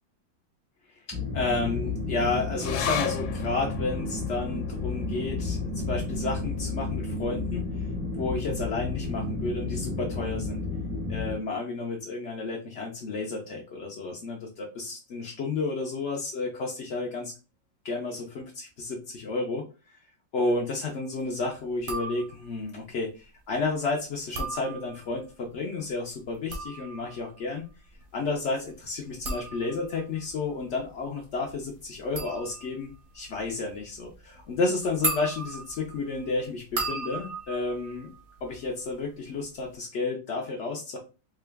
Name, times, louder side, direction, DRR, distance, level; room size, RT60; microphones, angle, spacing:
sound 1, 1.1-11.4, left 3 dB, 20° left, 1.0 m, -32 dB
voice 1, 1.3-7.6 8.1-10.6 11.1-17.3 17.8-19.6 20.3-27.6 28.1-38.1 38.4-41.0, left 3 dB, 65° left, 0 dB, 0.7 m, -31 dB
sound 2, 2.6-9.3 9.7-9.8 10.1-10.7 11.3-11.4, left 9 dB, 85° left, 1.3 m, -38 dB
sound 3, 21.8-22.6 24.1-25.2 26.2-38.9 39.2-39.8, right 3 dB, 55° right, 0.6 m, -37 dB
3.8 x 2.3 x 3.3 m, 0.32 s
omnidirectional pair, 2.0 m